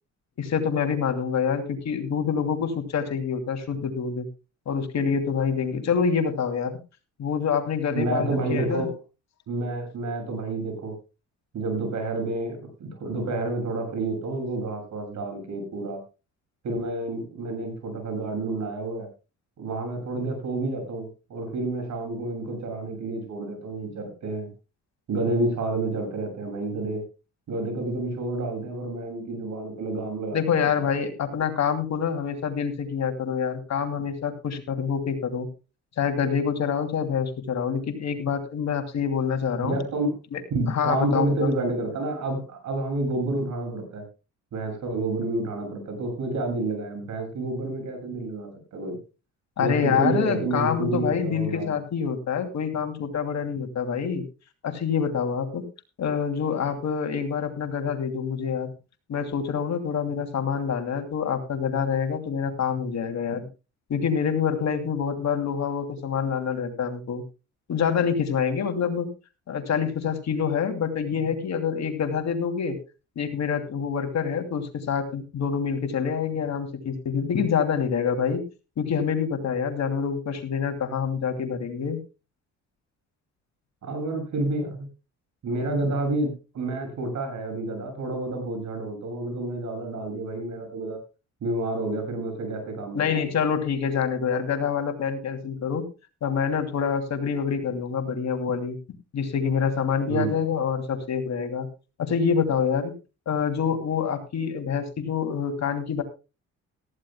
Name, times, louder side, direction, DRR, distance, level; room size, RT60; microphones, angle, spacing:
voice 1, 0.4-4.3 4.7-6.8 7.2-8.9 30.3-35.5 36.0-39.8 40.3-40.4 40.7-41.5 49.6-54.2 54.6-55.6 56.0-58.7 59.1-63.5 63.9-67.2 67.7-69.1 69.5-72.8 73.2-78.4 78.8-82.0 92.9-95.9 96.2-98.8 99.1-101.7 102.0-102.9 103.3-106.0, left 7 dB, 65° left, 6 dB, 2.8 m, -26 dB
voice 2, 7.9-8.9 9.5-11.0 11.5-16.0 16.6-19.1 19.6-24.5 25.1-27.1 27.5-30.7 39.6-40.1 40.5-44.1 44.5-49.0 49.6-51.8 83.8-84.9 85.4-91.0 91.4-93.3 100.1-100.3, right 2 dB, 70° right, 5 dB, 7.2 m, -29 dB
18.0 x 14.5 x 2.2 m, 0.30 s
cardioid pair, 90°, 30 cm